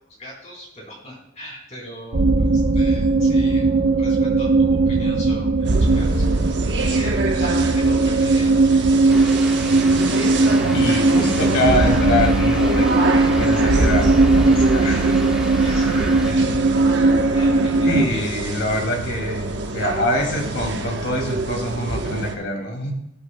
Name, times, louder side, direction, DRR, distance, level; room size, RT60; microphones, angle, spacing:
voice 1, 0.1-3.7 4.0-6.3 6.8-8.7 9.0-9.6 15.6-17.0 17.3-18.3, equal, 35° left, -3 dB, 3.7 m, -39 dB
sound 1, 2.1-18.1, right 3 dB, 75° right, 0.8 m, -18 dB
sound 2, 5.6-22.4, right 2 dB, 55° right, 1.1 m, -27 dB
sound 3, 9.1-16.3, right 1 dB, 5° right, 1.3 m, -35 dB
voice 2, 10.7-15.1 17.8-22.9, left 1 dB, 60° left, 1 dB, 2.4 m, -25 dB
19.5 x 7.9 x 2.2 m, 0.85 s
head